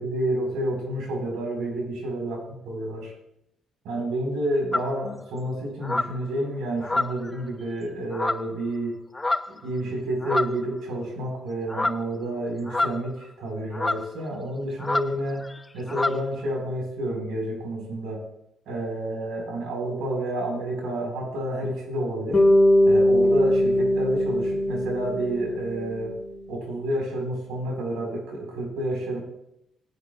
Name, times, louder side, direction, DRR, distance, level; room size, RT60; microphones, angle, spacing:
voice 1, 0.0-3.1 3.8-9.0 9.5-15.4 15.7-18.2 18.7-22.4 22.8-26.1 26.5-29.2, right 1 dB, 85° right, 0 dB, 4.7 m, -29 dB
sound 1, 4.7-5.0 5.8-6.2 6.8-7.4 8.1-8.6 9.1-9.6 10.2-10.7 11.7-12.1 12.7-13.2 13.7-14.1 14.8-15.1 15.4-15.6 15.9-16.2, left 2 dB, 20° left, 0.4 m, -27 dB
Bass guitar, 22.3-26.6, left 1 dB, 35° left, 1.9 m, -21 dB
17.5 x 8.2 x 2.4 m, 0.80 s
cardioid pair, 90°, 0 cm